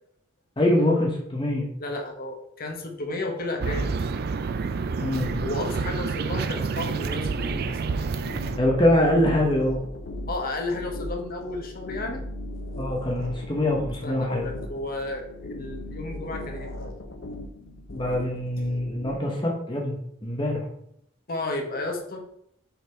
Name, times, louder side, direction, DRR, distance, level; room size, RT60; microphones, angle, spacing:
voice 1, 0.6-1.7 5.0-5.3 8.5-9.8 12.8-14.5 17.9-20.6, left 1 dB, 25° left, -1 dB, 0.9 m, -24 dB
voice 2, 1.8-4.0 5.4-7.8 10.3-12.3 14.0-16.9 21.3-22.2, left 2 dB, 45° left, 3 dB, 1.1 m, -32 dB
sound 1, 3.6-8.6, right 4 dB, 50° right, 0.4 m, -28 dB
sound 2, 6.8-19.1, left 1 dB, 65° left, 0.7 m, -37 dB
5.7 x 4.1 x 4.4 m, 0.73 s
head